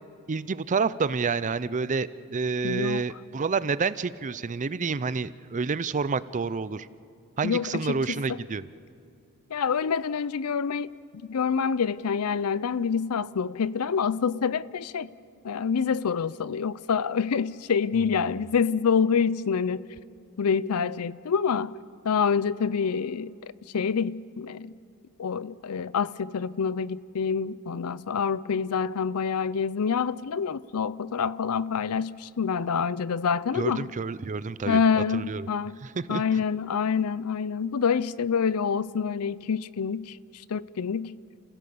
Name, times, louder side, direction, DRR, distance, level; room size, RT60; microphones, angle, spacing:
voice 1, 0.3-6.9 7.4-8.7 33.5-35.5 35.8-36.2, right 4 dB, 35° right, 0.5 m, -29 dB
voice 2, 2.6-3.0 7.4-8.2 9.5-10.9 11.3-15.1 15.4-19.9 20.4-21.7 22.0-24.7 25.2-33.9 34.7-35.8 36.1-40.2 40.5-41.2, left 6 dB, 85° left, 0.5 m, -27 dB
30.0 x 16.0 x 7.0 m
head